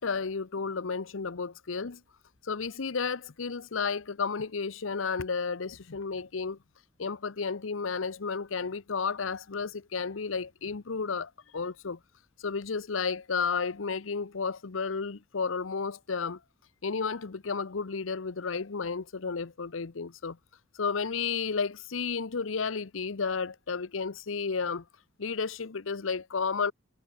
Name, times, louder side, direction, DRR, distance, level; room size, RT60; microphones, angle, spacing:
voice 1, 0.0-2.0 2.4-6.6 7.0-12.0 12.4-16.4 16.8-20.4 20.7-24.8 25.2-26.7, left 5 dB, 90° left, 0.8 m, -32 dB
head